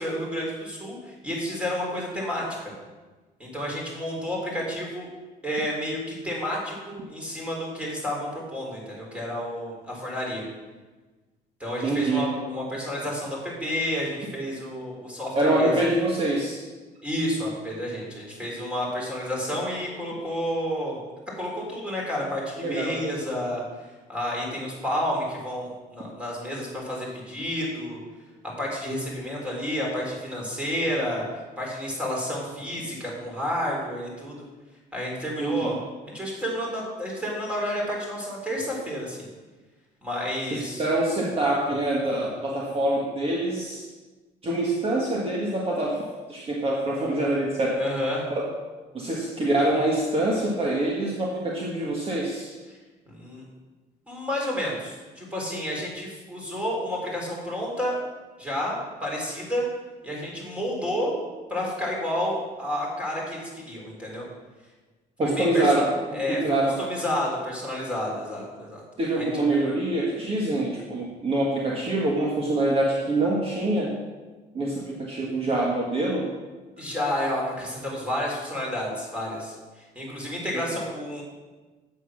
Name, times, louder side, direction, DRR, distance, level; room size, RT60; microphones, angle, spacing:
voice 1, 0.0-2.7 3.4-5.1 5.4-10.4 11.6-15.7 17.0-21.0 21.4-23.6 24.1-28.0 28.6-31.2 31.6-34.4 34.9-35.8 36.1-39.3 40.0-40.9 47.8-48.2 53.1-53.5 54.1-57.9 58.4-59.7 60.0-61.2 61.5-64.2 65.2-65.8 66.1-68.8 69.2-69.3 76.8-81.2, equal, 5° right, -3 dB, 3.8 m, -30 dB
voice 2, 11.8-12.3 15.3-16.6 22.6-23.0 35.4-35.7 40.5-43.8 44.4-46.0 46.3-47.8 48.3-48.5 48.9-52.6 65.2-66.7 69.0-73.9 74.5-76.3 80.5-80.6, right 1 dB, 35° right, -2 dB, 1.6 m, -25 dB
8.0 x 8.0 x 6.4 m, 1.3 s
cardioid pair, 110°, 17 cm